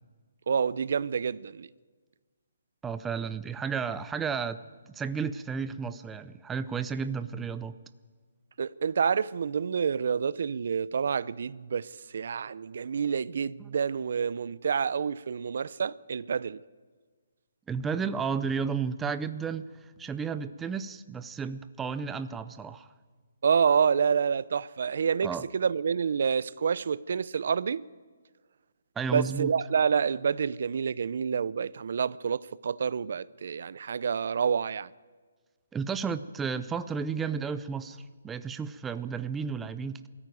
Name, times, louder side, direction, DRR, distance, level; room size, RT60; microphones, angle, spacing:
voice 1, 0.5-1.7 8.6-16.6 23.4-27.8 29.1-34.9, right 6 dB, 60° right, 0.5 m, -28 dB
voice 2, 2.8-4.6 4.9-7.7 13.6-13.7 17.7-22.9 25.2-25.4 29.0-29.5 35.7-40.1, right 6 dB, 10° right, 0.5 m, -33 dB
21.5 x 14.0 x 9.2 m
hypercardioid pair, 165°, 0 cm